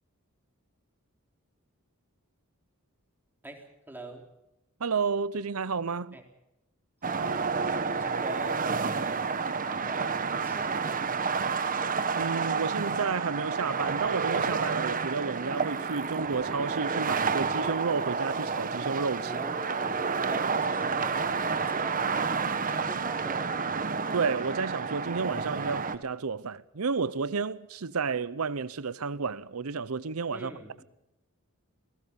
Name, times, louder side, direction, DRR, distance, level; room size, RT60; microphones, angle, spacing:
voice 1, 3.4-4.2 6.1-6.2 7.0-9.4 9.6-11.4 19.2-23.5 30.3-30.9, right 1 dB, 10° right, 4.0 m, -43 dB
voice 2, 4.8-6.1 12.1-19.3 24.1-30.5, right 5 dB, 75° right, 0.7 m, -31 dB
sound 1, 7.0-26.0, right 5 dB, 40° right, 1.3 m, -30 dB
28.5 x 19.5 x 5.5 m
head